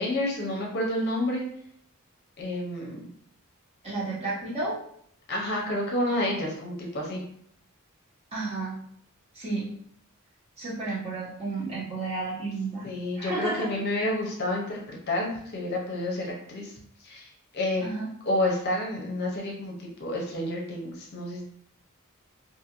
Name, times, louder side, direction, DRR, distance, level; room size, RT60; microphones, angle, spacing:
voice 1, 0.0-1.4 2.4-3.1 5.3-7.2 12.8-16.7 17.0-17.3 17.5-17.8 18.3-21.4, left 1 dB, 50° left, -2 dB, 0.6 m, -29 dB
voice 2, 3.8-4.8 8.3-8.8 9.3-9.7 10.6-12.9 13.2-13.7 17.8-18.1, right 3 dB, 30° right, -8 dB, 1.1 m, -32 dB
2.5 x 2.5 x 2.9 m, 0.66 s
head